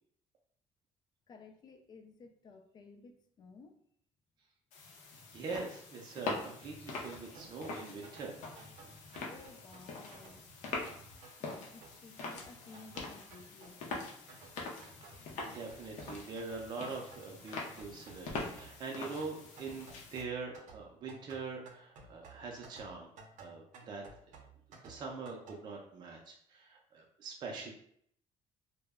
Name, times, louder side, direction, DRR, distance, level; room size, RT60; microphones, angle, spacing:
voice 1, 1.3-3.8 9.3-10.5 11.4-14.1 27.6-27.7, left 4 dB, 35° left, 5 dB, 0.3 m, -55 dB
sound 1, 4.7-20.2, left 3 dB, 80° left, 0.6 m, -44 dB
voice 2, 5.3-8.3 8.6-8.7 15.2-23.1 23.4-24.0 24.8-27.7, right 4 dB, 35° right, -1 dB, 0.4 m, -43 dB
sound 2, 7.3-25.6, right 4 dB, 90° right, 0.5 m, -57 dB
2.1 x 2.0 x 3.4 m, 0.65 s
cardioid pair, 160°, 12 cm